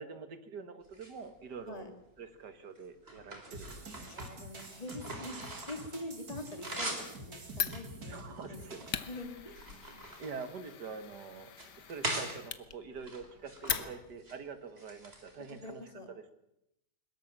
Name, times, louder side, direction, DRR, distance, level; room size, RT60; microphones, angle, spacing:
voice 1, 0.0-1.9 2.2-4.1 8.0-9.0 9.7-16.3, right 5 dB, 75° right, 10 dB, 2.4 m, -46 dB
sound 1, 0.8-1.8 2.4-5.9 6.2-7.1 7.6-8.9 9.4-11.1 11.5-12.4 13.0-13.8 14.1-14.4 14.8-15.7, right 1 dB, 35° right, 4.5 m, -42 dB
sound 2, 3.5-9.0, right 1 dB, 60° right, 3.4 m, -48 dB
voice 2, 4.1-9.6 15.6-16.1, left 1 dB, 20° left, 5 dB, 2.9 m, -45 dB
Fire, 7.5-14.3, left 9 dB, 90° left, 1.8 m, -41 dB
22.0 x 21.0 x 7.5 m, 0.83 s
omnidirectional pair, 1.8 m